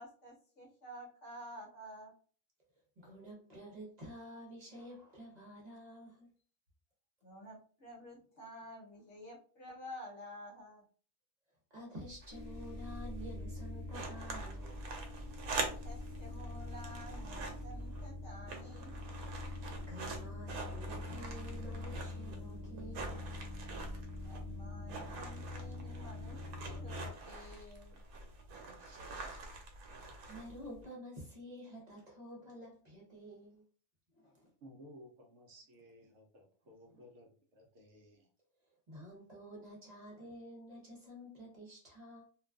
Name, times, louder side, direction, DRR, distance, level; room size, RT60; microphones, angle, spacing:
voice 1, 0.0-2.1 7.2-10.8 15.6-18.9 24.2-28.0 29.2-29.3, equal, 60° left, -2 dB, 1.1 m, -51 dB
voice 2, 3.0-6.3 11.7-14.9 19.9-23.3 28.7-29.4 30.0-33.6 34.1-34.5 36.9-37.0 38.9-42.2, equal, 35° right, -4 dB, 0.8 m, -50 dB
sound 1, 12.0-30.8, right 3 dB, 90° right, 1.1 m, -45 dB
sound 2, 12.3-27.1, left 2 dB, 40° left, 0.7 m, -45 dB
voice 3, 34.6-38.3, equal, 65° right, 1 dB, 0.8 m, -57 dB
2.5 x 2.3 x 2.3 m, 0.43 s
omnidirectional pair, 1.5 m